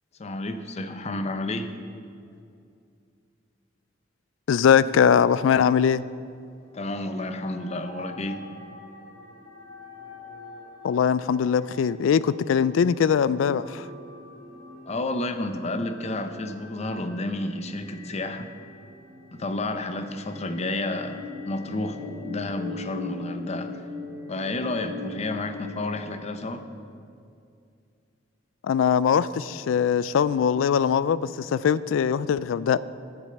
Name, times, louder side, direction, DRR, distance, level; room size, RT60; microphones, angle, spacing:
voice 1, 0.2-1.7 6.7-8.4 14.9-18.5 19.3-23.8 24.3-26.6, left 2 dB, 35° left, 9 dB, 0.6 m, -31 dB
voice 2, 4.5-6.0 10.8-13.9 28.6-32.8, left 7 dB, 85° left, 18 dB, 0.3 m, -21 dB
sound 1, 7.0-25.7, left 3 dB, 45° right, 2.7 m, -42 dB
8.3 x 7.1 x 7.8 m, 2.4 s
head